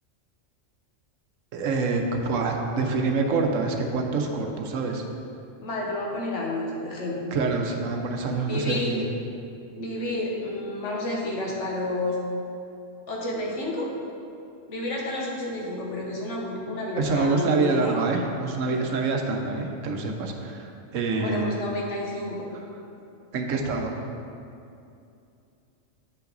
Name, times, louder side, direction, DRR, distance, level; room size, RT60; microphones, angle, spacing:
voice 1, 1.5-5.0 7.3-9.1 17.0-21.5 23.3-24.0, right 3 dB, 75° right, 3 dB, 1.1 m, -26 dB
voice 2, 5.6-7.3 8.5-9.0 9.7-12.2 13.1-13.9 14.7-17.9 21.2-22.5, left 1 dB, 65° left, -2 dB, 1.5 m, -30 dB
8.8 x 5.7 x 3.9 m, 2.6 s
omnidirectional pair, 1.3 m